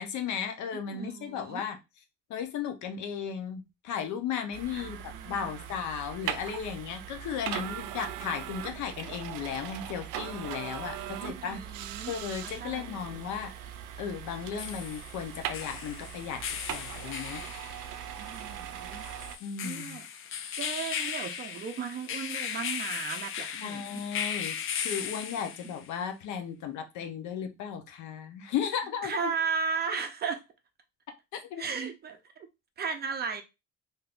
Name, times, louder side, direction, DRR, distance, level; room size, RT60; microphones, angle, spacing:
voice 1, 0.0-1.8 2.3-11.6 12.1-13.5 14.0-16.4 16.7-17.4 19.4-20.0 23.5-29.3 31.3-31.6, left 7 dB, 75° left, 0.7 m, -35 dB
voice 2, 0.9-1.6 4.7-5.7 11.2-12.1 12.4-13.3 18.2-19.1 19.6-20.1 20.6-24.0 25.6-25.7 29.0-30.4 31.6-32.2 32.8-33.4, right 5 dB, 35° right, 0.5 m, -36 dB
sound 1, 4.5-19.4, right 10 dB, 90° right, 0.5 m, -40 dB
sound 2, 11.7-11.8 14.3-25.9, left 8 dB, 45° left, 0.4 m, -37 dB
3.5 x 2.7 x 2.4 m
cardioid pair, 140°, 30 cm